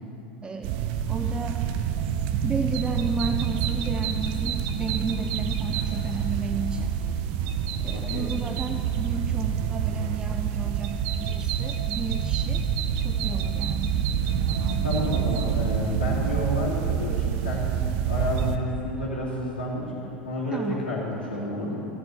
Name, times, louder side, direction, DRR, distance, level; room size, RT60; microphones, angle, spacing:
voice 1, 0.4-1.7 2.4-6.9 7.8-12.6 13.0-14.0 20.5-20.9, right 3 dB, 15° right, 5 dB, 0.6 m, -33 dB
sound 1, 0.6-18.6, right 8 dB, 50° right, 0.8 m, -27 dB
voice 2, 7.9-8.3 14.8-17.7 18.1-19.9 20.2-21.8, left 1 dB, 75° left, -6 dB, 3.1 m, -30 dB
14.0 x 7.2 x 9.3 m, 3.0 s
figure-of-eight pair, 80°, 5 cm